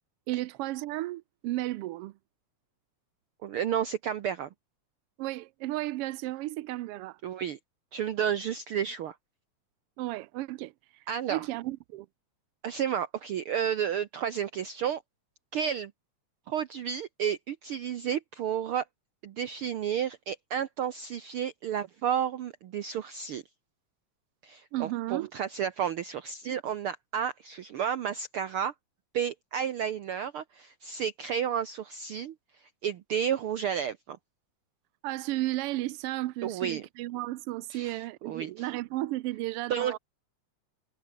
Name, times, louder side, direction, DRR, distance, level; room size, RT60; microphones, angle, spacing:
voice 1, 0.3-2.1 5.2-7.2 10.0-12.1 24.7-25.3 35.0-40.0, right 17 dB, 90° right, 1.2 m, -34 dB
voice 2, 3.4-4.5 7.2-7.6 7.9-9.1 11.1-11.4 12.6-15.0 15.5-15.9 16.5-18.8 19.2-23.4 24.4-28.7 29.1-34.2 36.4-36.8 37.7-38.7 39.7-40.0, right 8 dB, 65° right, 1.4 m, -32 dB
omnidirectional pair, 3.3 m